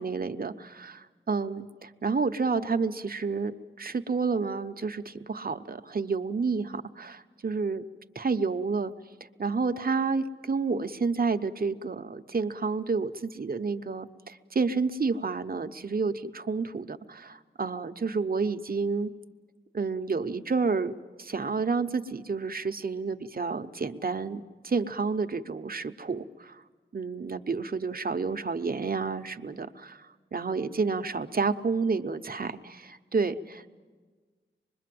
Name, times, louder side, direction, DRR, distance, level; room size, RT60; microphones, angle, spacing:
voice 1, 0.0-7.8 8.1-8.9 9.4-19.1 19.7-20.9 21.2-26.6 26.9-33.7, right 4 dB, 50° right, 8 dB, 0.8 m, -30 dB
25.0 x 21.5 x 7.7 m, 1.4 s
wide cardioid pair, 95°, 20 cm